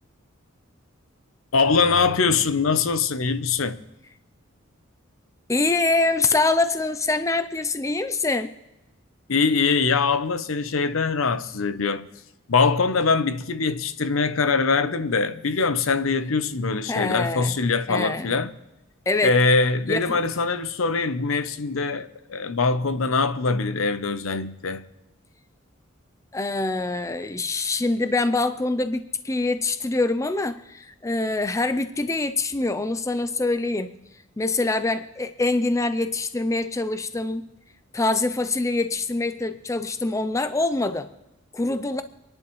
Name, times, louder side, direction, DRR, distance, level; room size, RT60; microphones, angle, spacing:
voice 1, 1.5-3.8 9.3-12.1 12.5-18.5 19.2-24.8, left 4 dB, 75° left, 0.7 m, -23 dB
voice 2, 5.5-8.6 16.9-17.5 17.9-18.3 19.1-19.4 19.9-20.2 26.3-33.9 34.4-37.5 37.9-41.1 41.5-42.0, left 2 dB, 15° left, 0.4 m, -24 dB
26.5 x 11.0 x 3.1 m
head